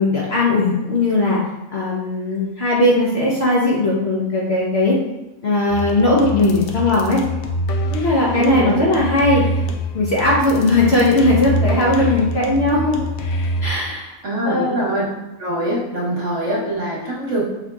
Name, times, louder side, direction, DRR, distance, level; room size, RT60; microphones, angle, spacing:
voice 1, 0.0-1.4 1.7-5.0 5.4-7.2 7.9-9.4 9.9-13.0 13.6-14.1 14.4-14.8, left 2 dB, 55° left, -5 dB, 0.8 m, -18 dB
sound 1, 5.7-13.7, left 1 dB, 85° left, 0.5 m, -25 dB
voice 2, 8.3-8.9 14.2-15.1 15.4-17.4, right 1 dB, 55° right, -7 dB, 1.6 m, -23 dB
5.9 x 2.8 x 2.3 m, 1.0 s
omnidirectional pair, 1.5 m